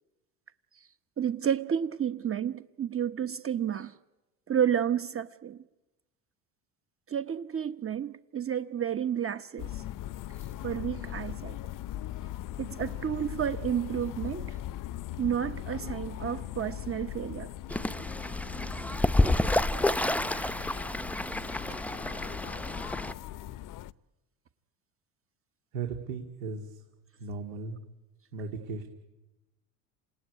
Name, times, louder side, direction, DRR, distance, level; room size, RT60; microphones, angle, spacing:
voice 1, 1.2-3.9 4.5-5.6 7.1-9.8 10.6-11.6 12.6-14.6 15.2-17.5, right 9 dB, 30° right, 1.1 m, -31 dB
sound 1, 9.6-23.9, left 13 dB, 50° left, 0.8 m, -40 dB
Fowl / Bird, 17.7-23.1, left 1 dB, 5° left, 0.8 m, -29 dB
voice 2, 25.7-26.8 27.2-27.8 28.3-28.8, right 4 dB, 80° right, 2.7 m, -36 dB
27.5 x 17.0 x 9.8 m
supercardioid pair, 85°, 41 cm